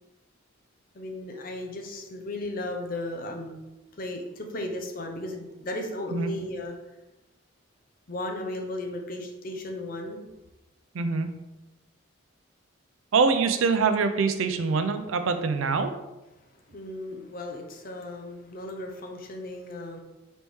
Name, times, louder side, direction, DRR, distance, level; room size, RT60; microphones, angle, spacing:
voice 1, 0.9-3.6 4.0-6.7 8.1-10.2 16.7-20.0, left 1 dB, 45° left, 3 dB, 0.5 m, -35 dB
voice 2, 10.9-11.3 13.1-15.9, right 4 dB, 80° right, 8 dB, 0.4 m, -24 dB
4.1 x 3.4 x 3.1 m, 1.0 s
head